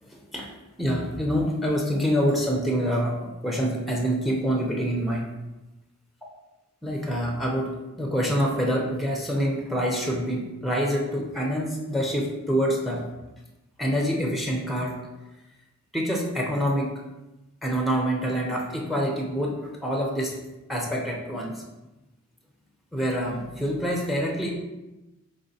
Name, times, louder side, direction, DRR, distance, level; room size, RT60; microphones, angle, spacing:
voice 1, 0.0-0.5 0.8-5.3 6.8-13.0 13.8-15.0 15.9-16.9 17.6-20.4 20.7-21.6 22.9-24.5, equal, ahead, 0 dB, 0.5 m, -26 dB
4.8 x 3.6 x 2.7 m, 1.0 s
head